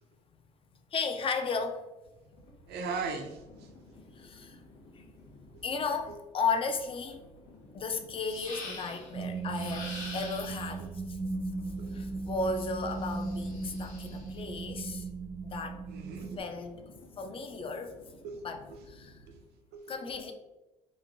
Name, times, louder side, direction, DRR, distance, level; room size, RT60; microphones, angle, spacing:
voice 1, 0.9-1.8 4.1-4.6 4.9-5.0 5.6-7.2 7.7-11.2 11.9-15.1 15.4-15.8 16.4-16.8 17.2-17.9 18.4-18.6 18.9-19.2 19.9-20.3, left 4 dB, 35° left, 6 dB, 0.4 m, -34 dB
sound 1, 2.0-19.6, left 1 dB, 85° left, 0.7 m, -55 dB
voice 2, 2.7-3.7 5.5-5.6 6.1-6.2 10.8-10.9 11.8-12.0 15.9-16.4 18.2-18.4 18.7-18.8 19.3-19.4 19.7-20.3, right 4 dB, 75° right, 3 dB, 0.5 m, -39 dB
sound 2, 8.2-9.1 9.5-10.8 12.4-14.3, left 2 dB, 55° left, 1.0 m, -45 dB
sound 3, 9.1-16.4, right 3 dB, 30° right, 0.6 m, -37 dB
3.0 x 2.6 x 2.6 m, 1.1 s
cardioid pair, 110°, 17 cm